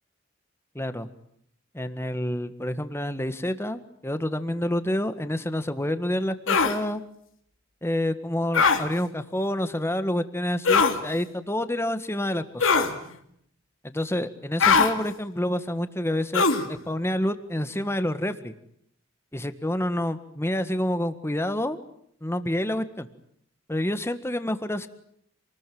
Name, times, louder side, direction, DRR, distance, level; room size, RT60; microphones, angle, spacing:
voice 1, 0.7-1.1 1.7-7.0 7.8-12.7 13.8-18.5 19.3-21.8 22.2-23.1 23.7-24.9, left 1 dB, 15° left, 11 dB, 1.6 m, -28 dB
sound 1, 6.5-6.8 8.5-8.8 10.6-11.0 12.6-12.9 14.6-14.9 16.3-16.7, left 5 dB, 85° left, 3.0 m, -20 dB
28.0 x 20.5 x 9.3 m, 0.69 s
head